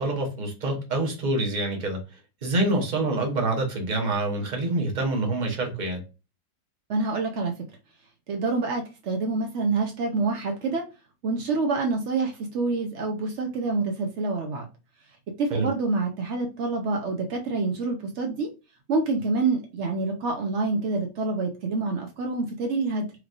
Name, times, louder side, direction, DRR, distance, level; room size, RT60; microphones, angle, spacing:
voice 1, 0.0-6.0 15.5-15.7, right 2 dB, 35° right, 0.8 m, -26 dB
voice 2, 6.9-7.5 8.3-10.9 11.2-14.7 15.4-18.5 18.9-23.1, right 3 dB, 80° right, 0.6 m, -27 dB
4.7 x 3.3 x 2.5 m
omnidirectional pair, 2.1 m